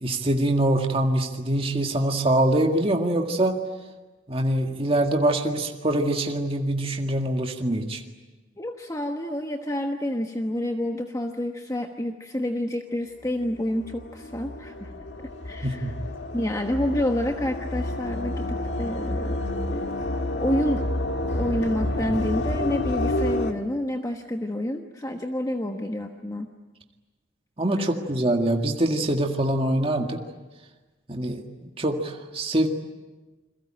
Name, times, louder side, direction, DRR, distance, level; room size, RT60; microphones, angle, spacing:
voice 1, 0.0-3.6 4.3-8.0 15.6-15.9 27.6-30.2 31.1-31.4 31.8-32.7, right 1 dB, 30° right, 3 dB, 1.9 m, -24 dB
voice 2, 8.6-15.0 15.4-15.9 16.3-19.4 19.7-19.9 20.3-20.8 21.4-26.5 27.8-27.9, left 1 dB, 15° left, 4 dB, 1.2 m, -28 dB
sound 1, 13.4-23.5, left 1 dB, 60° left, 2.0 m, -29 dB
29.0 x 22.5 x 8.9 m, 1.2 s
head